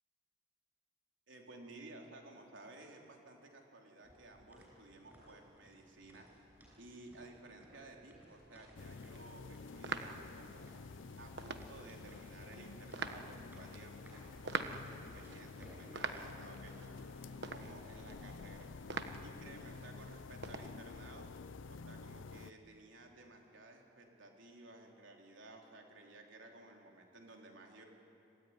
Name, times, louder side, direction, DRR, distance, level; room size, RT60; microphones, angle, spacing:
voice 1, 1.3-6.4 6.8-10.7 11.2-17.0 17.5-18.7 19.2-21.3 21.7-27.8, right 2 dB, 85° right, 1 dB, 3.8 m, -55 dB
sound 1, 4.0-18.1, equal, 10° right, 6.8 m, -61 dB
sound 2, 8.8-22.5, left 4 dB, 90° left, 0.6 m, -50 dB
sound 3, 8.9-20.7, right 4 dB, 60° right, 1.2 m, -47 dB
26.5 x 17.0 x 9.8 m, 2.7 s
head